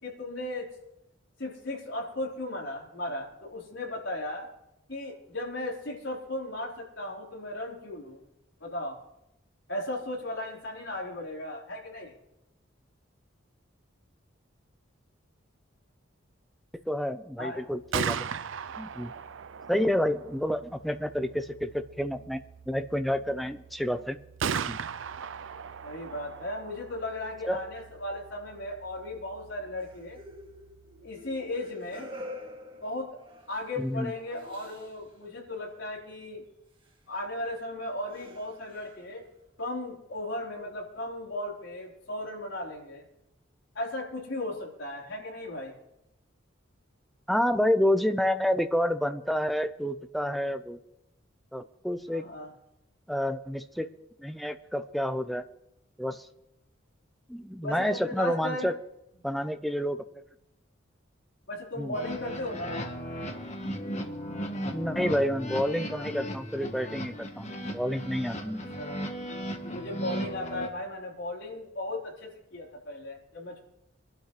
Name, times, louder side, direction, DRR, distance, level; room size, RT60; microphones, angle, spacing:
voice 1, 0.0-0.7 1.4-4.5 4.9-8.2 8.6-9.0 9.7-12.1 17.4-17.6 25.8-30.2 31.0-32.1 32.8-33.2 33.5-36.4 37.1-39.2 39.6-43.0 43.7-45.7 52.1-52.5 57.6-58.7 61.5-62.8 68.7-69.0 69.7-73.6, left 1 dB, 65° left, -2 dB, 4.4 m, -36 dB
voice 2, 16.9-18.2 18.8-19.1 19.7-22.4 22.7-24.2 24.7-24.8 27.5-27.6 33.8-34.1 47.3-50.8 51.5-52.3 53.1-53.9 54.2-55.4 56.0-56.3 57.3-58.7 59.2-60.0 61.8-61.9 64.7-68.7, equal, ahead, 9 dB, 0.6 m, -29 dB
Gunshot gunfire, 17.7-31.5, right 6 dB, 75° right, 0.5 m, -39 dB
sound 1, 29.8-35.2 35.5-35.8 36.8-37.0 37.6-37.7 38.1-39.4, left 1 dB, 25° right, 2.0 m, -47 dB
sound 2, 61.9-70.7, equal, 35° left, 1.5 m, -36 dB
23.5 x 12.0 x 3.3 m, 0.84 s
head